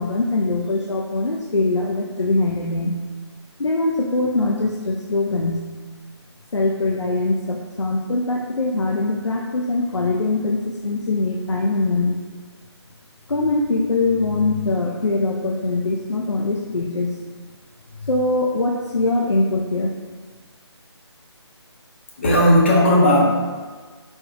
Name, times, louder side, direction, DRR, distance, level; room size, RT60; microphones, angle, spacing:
voice 1, 0.0-3.0 3.6-5.7 6.5-12.2 13.3-17.2 18.0-20.0, left 2 dB, 90° left, 0 dB, 0.4 m, -22 dB
voice 2, 22.2-23.3, equal, 25° left, -4 dB, 0.6 m, -15 dB
4.0 x 3.4 x 2.4 m, 1.4 s
figure-of-eight pair, 150°, 15 cm